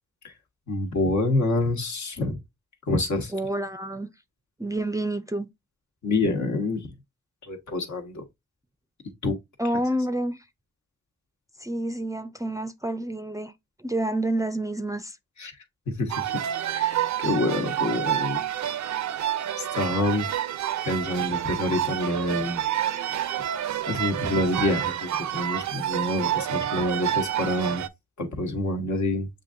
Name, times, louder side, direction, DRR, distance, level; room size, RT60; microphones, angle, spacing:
voice 1, 0.7-2.4 2.9-3.3 6.0-6.9 7.4-8.2 9.2-9.4 15.4-15.5 15.9-16.3 16.7-18.4 19.6-20.3 20.8-22.6 23.1-23.3 23.9-27.8 28.2-29.3, left 2 dB, 65° left, 1.3 m, -27 dB
voice 2, 3.3-4.1 4.6-5.5 9.6-10.4 11.6-13.5 13.8-15.2, right 1 dB, 10° right, 0.5 m, -28 dB
sound 1, 16.1-27.9, right 11 dB, 65° right, 0.5 m, -28 dB
6.6 x 2.6 x 2.5 m
supercardioid pair, 50°, 31 cm